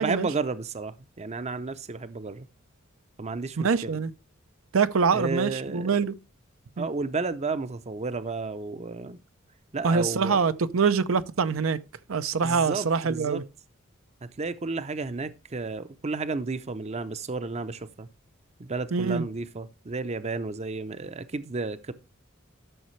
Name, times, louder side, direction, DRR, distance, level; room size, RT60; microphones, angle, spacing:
voice 1, 0.0-2.5 3.2-4.0 5.1-6.0 6.8-9.2 9.7-10.4 12.4-13.4 14.2-18.1 18.6-21.9, right 3 dB, 35° right, 0.6 m, -32 dB
voice 2, 3.6-4.1 4.7-6.1 6.8-6.9 9.8-11.8 12.1-13.4 18.9-19.2, right 5 dB, 80° right, 0.6 m, -24 dB
12.5 x 6.5 x 3.2 m
head